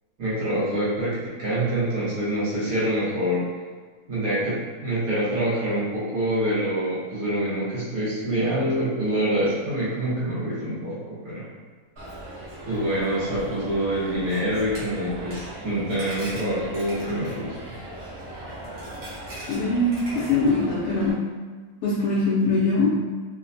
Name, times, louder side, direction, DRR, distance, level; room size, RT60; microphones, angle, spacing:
voice 1, 0.2-3.5 4.1-11.4 12.7-17.8, right 1 dB, 75° right, -9 dB, 1.4 m, -26 dB
Coin (dropping), 12.0-21.1, right 1 dB, 50° right, 1.1 m, -38 dB
voice 2, 19.5-21.3 21.8-22.9, left 2 dB, 65° left, -7 dB, 0.8 m, -22 dB
3.1 x 2.1 x 2.5 m, 1.5 s
omnidirectional pair, 1.5 m